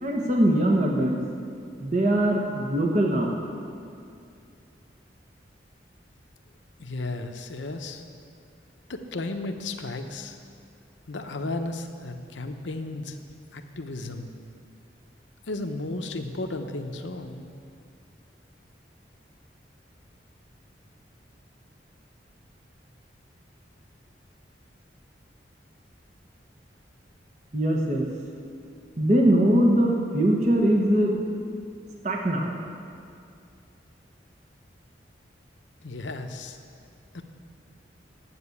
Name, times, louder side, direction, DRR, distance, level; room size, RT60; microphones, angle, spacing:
voice 1, 0.0-1.2 1.8-3.4 27.5-28.0 29.0-31.1 32.0-32.5, right 1 dB, 40° right, -1 dB, 1.1 m, -22 dB
voice 2, 6.8-8.0 8.9-10.4 11.1-13.2 13.5-14.3 15.5-17.5 35.8-36.6 37.1-37.2, left 2 dB, 90° left, 6 dB, 0.9 m, -34 dB
9.9 x 7.9 x 8.5 m, 2.4 s
head